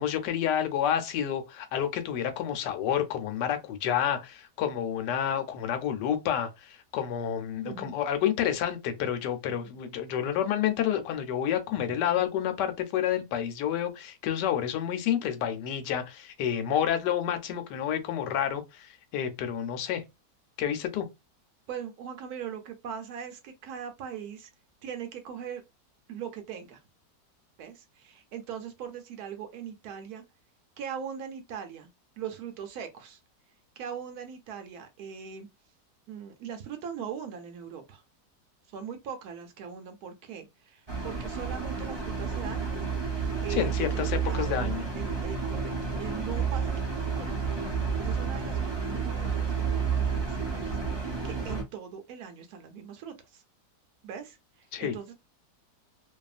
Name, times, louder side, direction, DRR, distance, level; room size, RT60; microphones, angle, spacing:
voice 1, 0.0-20.0 20.6-21.1 43.6-44.9 54.7-54.9, left 9 dB, 85° left, 1.2 m, -29 dB
voice 2, 7.6-8.0 9.6-9.8 21.7-24.5 24.8-25.6 26.1-26.8 27.6-30.2 30.8-31.9 32.2-33.2 33.8-35.5 36.1-38.0 38.7-42.7 43.4-53.4 54.0-55.1, right 8 dB, 70° right, 1.0 m, -40 dB
sound 1, 40.9-51.6, right 5 dB, 35° right, 0.4 m, -30 dB
2.7 x 2.4 x 2.4 m
omnidirectional pair, 1.8 m